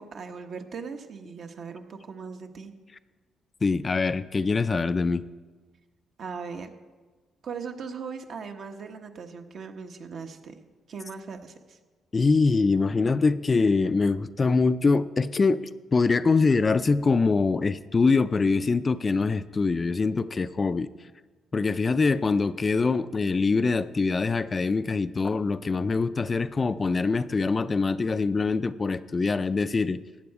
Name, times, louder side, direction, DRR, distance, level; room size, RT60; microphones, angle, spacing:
voice 1, 0.0-2.7 6.2-6.7 7.4-10.6 10.9-11.8, right 5 dB, 60° right, 5 dB, 1.1 m, -39 dB
voice 2, 3.6-5.2 12.1-15.6 15.9-20.9 21.5-30.0, left 4 dB, 30° left, 13 dB, 0.4 m, -24 dB
14.5 x 8.6 x 4.8 m, 1.3 s
cardioid pair, 90°, 0 cm